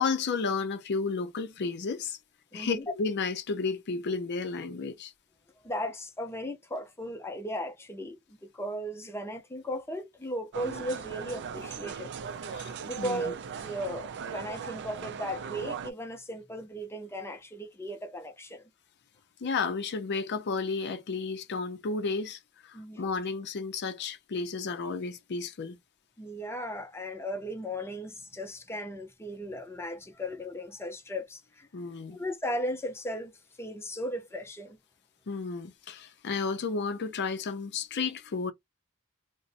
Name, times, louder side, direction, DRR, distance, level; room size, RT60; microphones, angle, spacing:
voice 1, 0.0-2.2 2.5-5.1 12.5-13.2 19.4-25.8 31.7-32.2 35.3-38.5, left 4 dB, 55° left, 0.5 m, -32 dB
voice 2, 2.5-2.9 5.6-12.1 12.8-18.7 22.7-23.1 26.2-31.7 32.1-34.8, equal, 10° left, 0.6 m, -36 dB
sound 1, 10.5-15.9, right 6 dB, 55° right, 0.4 m, -39 dB
2.5 x 2.1 x 3.9 m
head